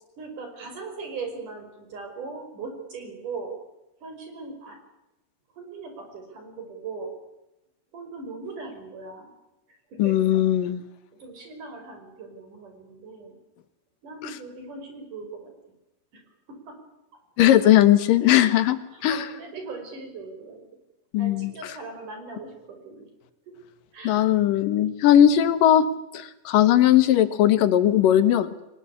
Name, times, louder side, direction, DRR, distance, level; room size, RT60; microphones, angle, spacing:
voice 1, 0.2-3.5 4.0-4.8 5.6-7.1 7.9-9.3 9.9-10.4 11.1-13.4 14.0-15.5 16.1-16.2 16.5-16.8 17.4-17.8 18.9-20.6 21.2-23.1 23.5-23.6 23.9-24.3, right 4 dB, 70° right, 5 dB, 6.9 m, -39 dB
voice 2, 10.0-10.8 14.2-14.3 17.4-19.2 21.1-21.7 24.0-25.9 26.1-28.5, left 11 dB, 85° left, 13 dB, 3.1 m, -19 dB
23.0 x 20.0 x 8.4 m, 0.93 s
omnidirectional pair, 3.8 m